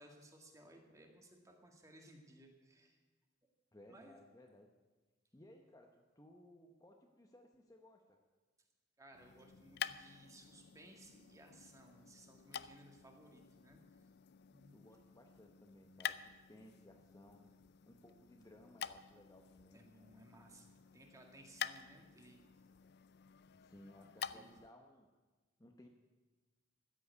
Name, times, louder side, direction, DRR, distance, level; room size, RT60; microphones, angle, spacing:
voice 1, 0.0-3.0 3.9-4.2 9.0-14.1 14.5-14.8 19.7-22.4 24.3-24.5, right 1 dB, 15° right, 2 dB, 1.9 m, -60 dB
voice 2, 3.7-4.7 5.3-8.2 14.7-17.5 17.8-19.8 23.5-25.1 25.6-25.9, left 1 dB, 15° left, 2 dB, 0.8 m, -61 dB
sound 1, 9.1-24.7, left 9 dB, 55° left, 0.4 m, -49 dB
13.5 x 7.8 x 9.5 m, 1.3 s
head